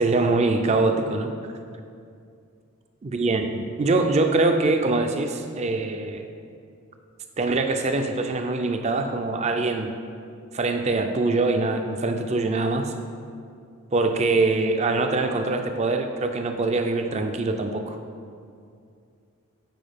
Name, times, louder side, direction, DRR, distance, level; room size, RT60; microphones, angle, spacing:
voice 1, 0.0-1.3 3.0-6.2 7.4-9.9 10.5-12.9 13.9-18.0, right 3 dB, 30° right, 6 dB, 0.4 m, -23 dB
9.2 x 4.2 x 3.5 m, 2.3 s
head